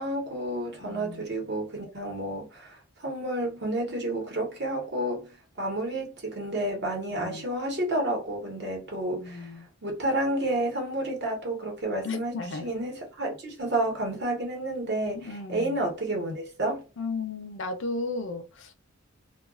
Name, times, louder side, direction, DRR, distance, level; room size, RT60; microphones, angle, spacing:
voice 1, 0.0-9.5 9.8-16.8, right 1 dB, 55° right, 1.0 m, -30 dB
voice 2, 0.8-1.3 7.1-7.4 9.1-9.7 12.0-12.7 15.1-15.8 17.0-18.7, left 3 dB, 60° left, 0.5 m, -35 dB
2.3 x 2.3 x 2.3 m
head